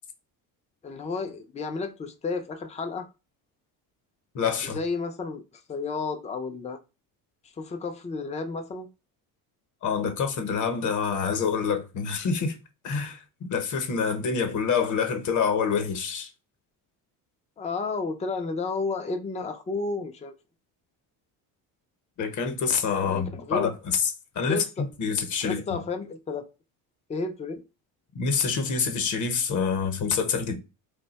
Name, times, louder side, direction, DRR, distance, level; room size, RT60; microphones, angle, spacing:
voice 1, 0.8-3.1 4.6-5.4 5.7-6.8 7.6-8.9 17.6-20.3 23.0-23.7 24.5-24.9 25.4-26.5 27.1-27.6, left 4 dB, 15° left, 0.4 m, -32 dB
voice 2, 4.3-4.8 9.8-12.5 12.8-13.2 13.5-16.3 22.2-25.8 28.1-30.5, left 6 dB, 45° left, 0.9 m, -27 dB
2.6 x 2.2 x 4.0 m
cardioid pair, 105°, 42 cm